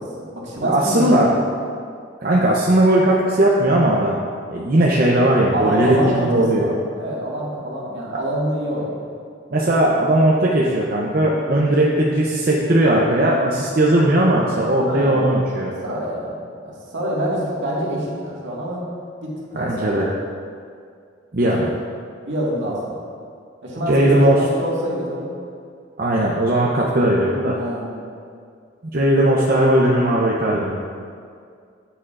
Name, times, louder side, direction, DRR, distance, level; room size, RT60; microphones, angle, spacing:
voice 1, 0.0-1.5 5.5-9.1 14.8-15.2 15.8-18.8 19.2-20.0 22.2-23.0 23.6-25.3 27.5-27.9, equal, 75° right, -5 dB, 1.9 m, -26 dB
voice 2, 0.6-1.3 2.2-4.2 4.5-6.7 9.5-15.7 19.5-20.1 21.3-21.7 23.9-24.4 26.0-27.6 28.9-30.8, right 1 dB, 50° right, -4 dB, 0.7 m, -17 dB
9.1 x 8.6 x 2.5 m, 2.2 s
head